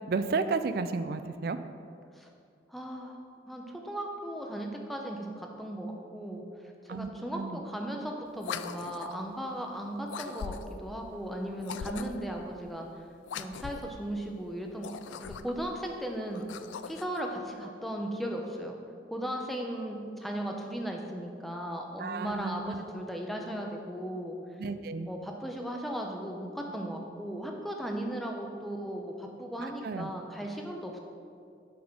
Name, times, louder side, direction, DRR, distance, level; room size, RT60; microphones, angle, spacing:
voice 1, 0.1-1.6 6.9-7.1 7.3-7.6 22.0-22.8 24.6-25.1 29.6-30.1, right 4 dB, 55° right, 11 dB, 0.3 m, -32 dB
voice 2, 2.7-3.2 3.5-6.4 6.8-13.1 13.3-16.5 16.9-18.7 19.1-24.6 25.1-31.0, right 1 dB, ahead, 1 dB, 0.7 m, -37 dB
sound 1, 8.4-9.2 10.1-10.9 11.6-12.3 13.2-14.0 14.7-15.7 16.3-17.2, left 6 dB, 85° left, 0.3 m, -40 dB
8.4 x 4.1 x 5.9 m, 2.4 s
head